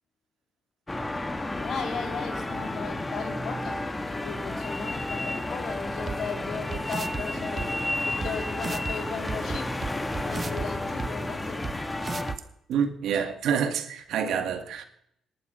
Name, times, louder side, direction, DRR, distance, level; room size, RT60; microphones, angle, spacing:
sound 1, 0.9-12.4, left 1 dB, 15° left, 1.7 m, -32 dB
voice 1, 1.5-7.7 8.0-11.6, left 5 dB, 60° left, 3.0 m, -37 dB
sound 2, 6.1-6.2 6.7-7.2 7.6-7.7 8.2-8.3 8.6-8.9 9.3-10.7 11.0-11.1 11.6-11.7 12.0-12.4, right 5 dB, 40° right, 1.1 m, -34 dB
voice 2, 12.7-14.9, right 7 dB, 70° right, 2.0 m, -27 dB
19.5 x 11.5 x 5.6 m
supercardioid pair, 60°, 0 cm